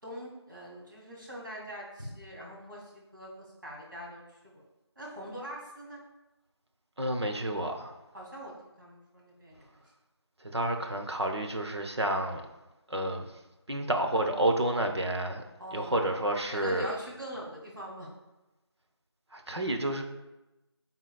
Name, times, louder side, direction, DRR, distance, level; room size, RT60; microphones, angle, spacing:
voice 1, 0.0-4.6 5.0-6.0 8.1-9.8 15.6-15.9 16.5-18.1, equal, 50° right, -5 dB, 2.3 m, -43 dB
voice 2, 7.0-7.9 10.5-12.4 12.9-13.3 13.7-15.4 15.7-16.9 19.3-20.0, right 1 dB, 70° right, 3 dB, 0.9 m, -30 dB
11.5 x 4.0 x 2.4 m, 1.0 s
figure-of-eight pair, 175°, 14 cm